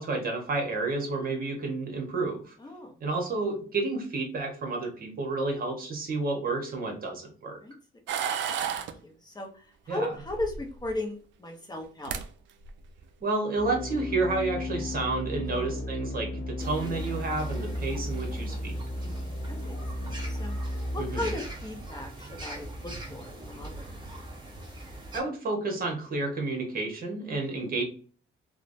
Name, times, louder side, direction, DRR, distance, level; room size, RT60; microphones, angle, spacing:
voice 1, 0.0-2.6 3.0-7.6 9.9-10.1 13.2-18.8 21.0-21.3 25.1-27.8, right 3 dB, 45° right, 2 dB, 1.1 m, -30 dB
voice 2, 2.6-3.0 7.6-7.7 8.1-8.4 8.7-12.1 15.4-15.8 17.7-18.1 18.9-24.1 27.3-27.7, left 1 dB, 20° left, 2 dB, 0.6 m, -38 dB
sound 1, 8.1-8.9 10.3-10.9 11.8-11.9 12.0-12.3 12.6-13.0, right 8 dB, 70° right, 0.4 m, -31 dB
sound 2, 13.6-21.4, left 1 dB, 70° left, 0.5 m, -34 dB
sound 3, 16.6-25.2, right 1 dB, 20° right, 1.0 m, -42 dB
3.1 x 2.0 x 2.6 m, 0.40 s
cardioid pair, 90°, 20 cm